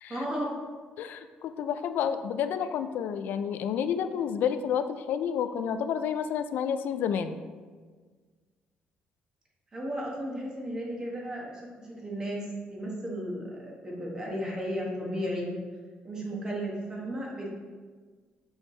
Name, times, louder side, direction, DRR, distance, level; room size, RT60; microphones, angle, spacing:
voice 1, 0.1-0.5 9.7-15.5 16.0-17.5, equal, 20° right, -3 dB, 1.4 m, -34 dB
voice 2, 1.0-7.4, left 8 dB, 70° left, 10 dB, 0.4 m, -30 dB
6.2 x 4.7 x 3.2 m, 1.5 s
cardioid pair, 135°, 3 cm